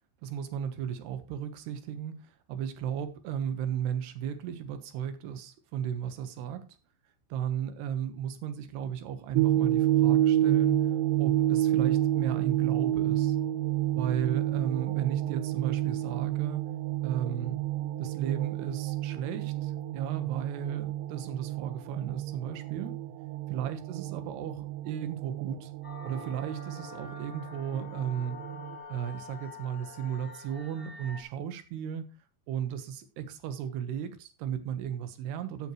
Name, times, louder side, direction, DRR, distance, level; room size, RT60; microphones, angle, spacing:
voice 1, 0.2-6.6 7.3-10.9 11.2-13.4 14.0-16.6 17.0-17.6 18.0-22.9 23.5-25.7 26.0-28.4 28.9-32.1 32.5-35.7, right 9 dB, 70° right, 3.2 m, -35 dB
sound 1, 9.3-28.8, right 13 dB, 90° right, 3.1 m, -29 dB
sound 2, 25.8-31.2, left 4 dB, 5° right, 2.2 m, -46 dB
15.0 x 8.0 x 3.1 m
omnidirectional pair, 5.2 m